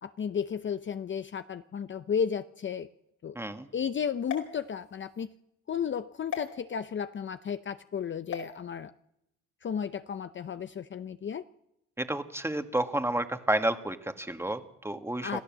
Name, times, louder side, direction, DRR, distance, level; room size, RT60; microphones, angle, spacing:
voice 1, 0.0-2.9 3.2-3.4 3.7-5.3 5.7-8.9 9.6-11.5 15.2-15.4, left 7 dB, 40° left, 12 dB, 0.7 m, -33 dB
voice 2, 3.4-3.7 12.0-15.4, right 1 dB, 10° right, 7 dB, 1.8 m, -30 dB
sound 1, 4.2-5.3 6.3-6.5 8.2-8.5, left 7 dB, 75° left, 4.9 m, -38 dB
26.5 x 15.0 x 7.5 m, 0.84 s
cardioid pair, 90°, 30 cm